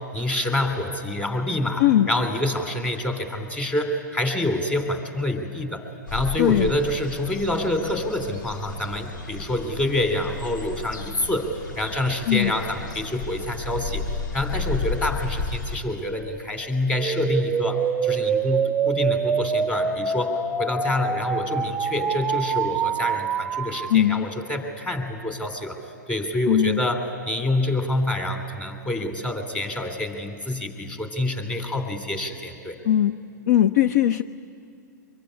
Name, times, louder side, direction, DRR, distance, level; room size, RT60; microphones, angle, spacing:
voice 1, 0.1-14.0 14.3-25.8 26.1-32.8, left 1 dB, 15° left, 6 dB, 3.0 m, -27 dB
sound 1, 6.1-15.8, left 3 dB, 80° left, 2.1 m, -33 dB
voice 2, 6.4-6.7 12.3-12.5 23.9-24.3 26.5-26.8 32.8-33.1 33.5-34.2, left 11 dB, 60° left, 12 dB, 0.6 m, -19 dB
sound 2, 17.0-23.9, right 6 dB, 10° right, 0.6 m, -25 dB
24.0 x 23.0 x 9.9 m, 2.4 s
hypercardioid pair, 120°, 10 cm